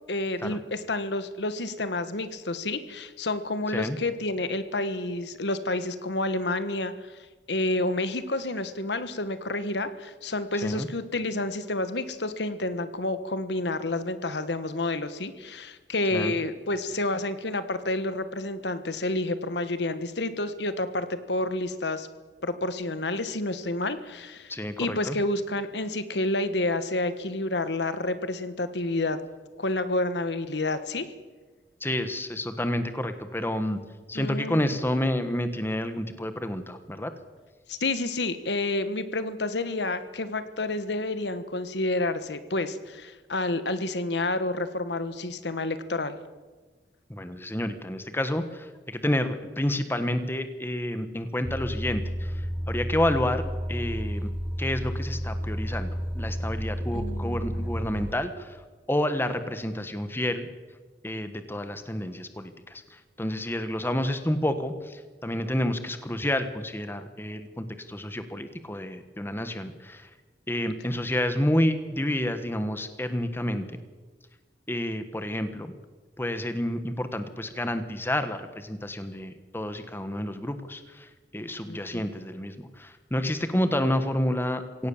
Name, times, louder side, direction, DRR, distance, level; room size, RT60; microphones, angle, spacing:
voice 1, 0.1-22.1 22.4-24.5 24.8-29.2 29.6-31.1 34.1-34.7 37.7-46.2 56.9-57.7 81.7-82.0, left 2 dB, 75° left, 12 dB, 1.4 m, -29 dB
voice 2, 24.5-25.2 31.8-33.8 34.1-37.1 47.1-54.3 54.6-58.6 58.9-60.5 61.0-70.1 70.5-73.7 74.7-75.7 76.2-84.9, left 1 dB, 15° left, 9 dB, 1.4 m, -29 dB
sound 1, 51.4-58.1, equal, 10° right, 0.8 m, -31 dB
22.5 x 17.5 x 7.2 m, 1.3 s
head